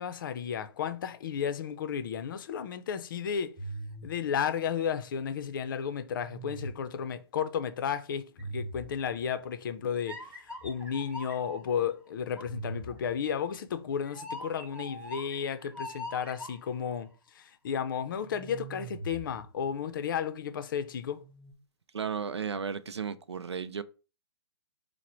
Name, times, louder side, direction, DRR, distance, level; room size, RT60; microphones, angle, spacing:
voice 1, 0.0-3.6 4.0-10.2 10.6-17.1 17.3-21.2, left 7 dB, 50° left, 0.5 m, -33 dB
sound 1, 3.6-5.4 6.2-7.1 8.4-9.4 10.0-11.7 12.4-16.9 18.2-20.0 21.1-21.5, right 1 dB, 10° right, 0.7 m, -42 dB
voice 2, 21.9-23.8, right 6 dB, 80° right, 0.4 m, -34 dB
4.7 x 2.1 x 4.3 m
figure-of-eight pair, 125°, 14 cm